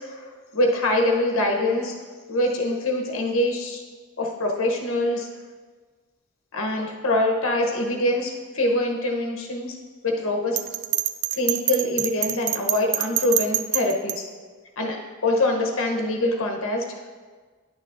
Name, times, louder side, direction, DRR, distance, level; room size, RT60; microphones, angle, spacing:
voice 1, 0.0-1.9 2.3-3.8 4.2-5.3 6.5-9.8 10.0-10.6 11.3-14.2 14.8-16.8, left 1 dB, 75° left, 1 dB, 1.1 m, -24 dB
Bell, 10.6-14.2, right 13 dB, 90° right, 0.4 m, -25 dB
10.5 x 6.1 x 2.7 m, 1.5 s
head